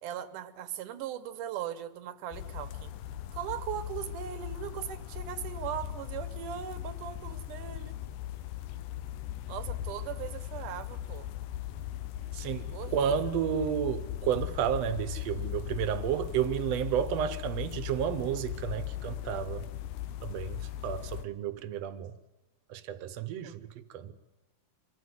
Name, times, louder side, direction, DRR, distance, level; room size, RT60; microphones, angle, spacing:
voice 1, 0.0-2.9 3.3-8.0 9.5-11.3 12.7-13.2 23.4-23.6, right 10 dB, 90° right, 2.6 m, -39 dB
sound 1, 2.3-21.3, left 12 dB, 85° left, 2.4 m, -38 dB
voice 2, 12.3-19.6 20.2-22.1 22.7-24.1, right 9 dB, 65° right, 1.8 m, -31 dB
24.5 x 14.0 x 9.6 m
omnidirectional pair, 3.5 m